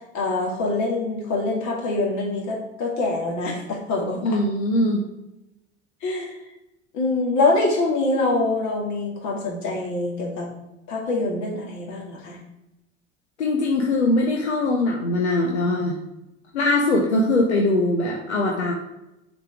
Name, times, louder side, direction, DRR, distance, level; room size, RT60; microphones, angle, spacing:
voice 1, 0.1-4.4 6.0-6.4 6.9-10.5 10.9-12.4, left 2 dB, 55° left, -1 dB, 2.3 m, -24 dB
voice 2, 4.2-5.0 13.4-16.0 16.5-18.7, left 2 dB, 90° left, 0 dB, 0.8 m, -21 dB
6.6 x 5.1 x 3.6 m, 0.90 s
hypercardioid pair, 70°, 33 cm